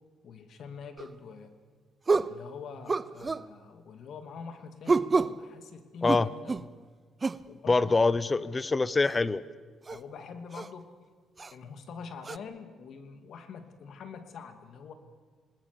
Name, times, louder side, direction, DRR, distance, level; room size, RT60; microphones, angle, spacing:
voice 1, 0.2-1.5 2.1-6.7 7.5-8.0 8.4-8.6 9.9-10.9 11.5-14.9, left 5 dB, 65° left, 8 dB, 2.6 m, -45 dB
sound 1, 1.0-1.1 2.1-2.4 2.9-3.5 4.9-5.4 6.1-6.7 7.2-7.5 9.1-9.2 9.9-10.0 10.5-10.7 11.4-11.5 12.2-12.4, right 4 dB, 30° right, 0.7 m, -28 dB
voice 2, 7.7-9.4, left 3 dB, 25° left, 18 dB, 0.9 m, -24 dB
27.5 x 19.5 x 6.9 m, 1.5 s
cardioid pair, 90°, 0 cm